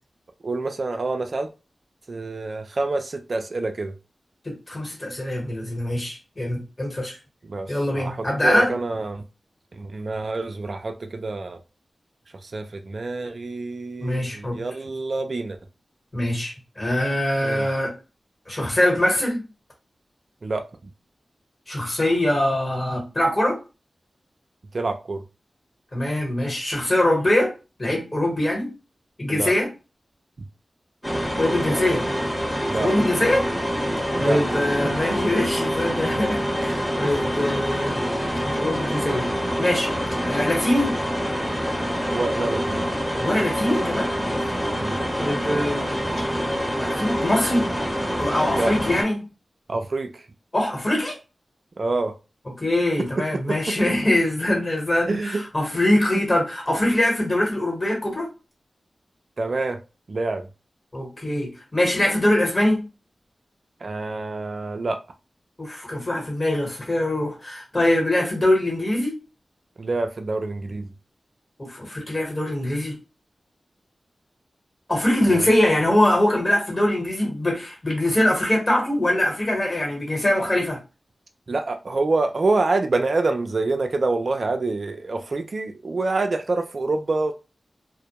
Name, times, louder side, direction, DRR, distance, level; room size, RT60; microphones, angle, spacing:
voice 1, 0.4-1.5 2.1-3.9 7.5-9.2 9.8-11.6 12.4-15.6 17.4-17.7 20.4-20.6 24.7-25.2 29.3-29.5 31.7-31.8 32.7-32.9 34.2-34.4 34.8-34.9 37.0-37.1 42.1-42.8 44.7-45.0 48.5-48.7 49.7-50.1 51.8-52.1 53.5-53.8 55.1-55.4 59.4-59.8 60.1-60.4 63.8-65.0 69.8-70.9 75.3-75.5 81.5-87.3, right 3 dB, 55° right, 0.3 m, -26 dB
voice 2, 4.4-7.2 7.7-8.7 14.0-14.6 16.1-17.9 18.5-19.4 21.7-23.6 25.9-27.5 27.8-28.7 29.2-29.7 31.4-32.0 32.7-33.5 34.2-38.1 38.5-39.9 40.3-41.0 43.2-44.5 45.2-45.8 46.8-47.7 48.2-49.2 50.5-51.2 52.6-58.3 60.9-62.8 65.6-69.1 71.6-73.0 74.9-80.8, left 1 dB, 30° left, 1.2 m, -23 dB
sound 1, 31.0-49.0, equal, 10° left, 0.9 m, -26 dB
2.1 x 2.1 x 2.9 m
wide cardioid pair, 75°, 0 cm